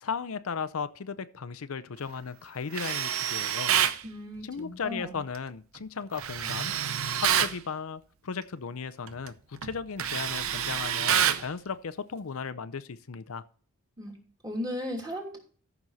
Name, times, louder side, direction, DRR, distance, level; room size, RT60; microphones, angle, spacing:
voice 1, 0.0-3.7 4.4-6.7 7.2-13.4, left 5 dB, 80° left, 0.6 m, -36 dB
Tools, 2.7-4.0 6.2-7.6 9.1-9.3 9.6-11.5, right 9 dB, 75° right, 0.7 m, -27 dB
voice 2, 4.0-5.2 14.0-14.1 14.4-15.4, left 1 dB, 20° right, 2.9 m, -36 dB
14.0 x 6.0 x 4.1 m
head